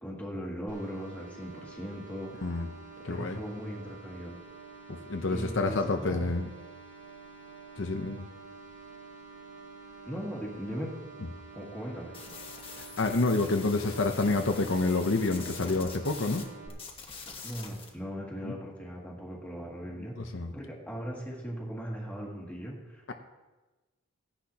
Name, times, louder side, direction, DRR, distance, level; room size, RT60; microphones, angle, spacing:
voice 1, 0.0-2.3 3.0-4.4 5.3-6.3 10.0-11.0 11.5-12.2 17.4-20.2 20.5-23.1, equal, 5° left, -4 dB, 2.3 m, -39 dB
sound 1, 0.7-16.7, right 4 dB, 60° right, 2.9 m, -49 dB
voice 2, 3.1-3.4 4.9-6.5 7.8-8.3 13.0-16.4 18.4-18.5 20.2-20.5 23.1-23.2, left 3 dB, 60° left, 5 dB, 0.8 m, -28 dB
sound 2, 12.1-16.5 16.7-17.9, left 4 dB, 25° left, 1.5 m, -44 dB
16.5 x 10.0 x 2.9 m, 1.1 s
head